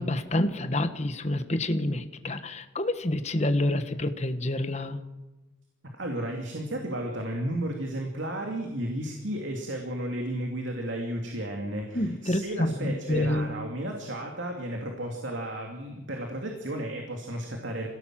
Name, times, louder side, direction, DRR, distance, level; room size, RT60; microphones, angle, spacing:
voice 1, 0.0-5.0 11.9-13.5, left 1 dB, 35° left, 8 dB, 1.4 m, -28 dB
voice 2, 5.9-17.9, right 1 dB, 75° right, 1 dB, 2.7 m, -33 dB
26.0 x 17.0 x 7.6 m, 1.1 s
head